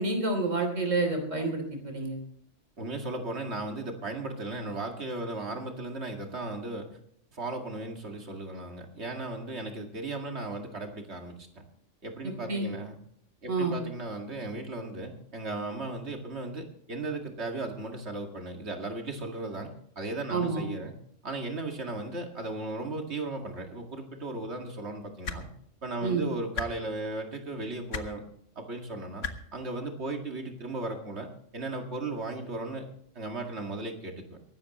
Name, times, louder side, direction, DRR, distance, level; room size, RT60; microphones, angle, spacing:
voice 1, 0.0-2.2 12.5-12.7 13.5-13.8 20.3-20.7 26.0-26.3, right 3 dB, 80° right, 4 dB, 3.6 m, -28 dB
voice 2, 2.8-6.9 7.3-11.5 12.0-13.0 13.4-20.9 21.2-25.5 25.8-28.3 28.6-32.9 33.2-34.4, right 2 dB, 60° right, 3 dB, 2.4 m, -36 dB
sound 1, 25.2-25.4 26.5-26.7 27.9-28.1 29.2-29.3 30.6-30.7, left 5 dB, 75° left, 1.5 m, -33 dB
23.0 x 12.5 x 3.1 m, 0.65 s
omnidirectional pair, 1.3 m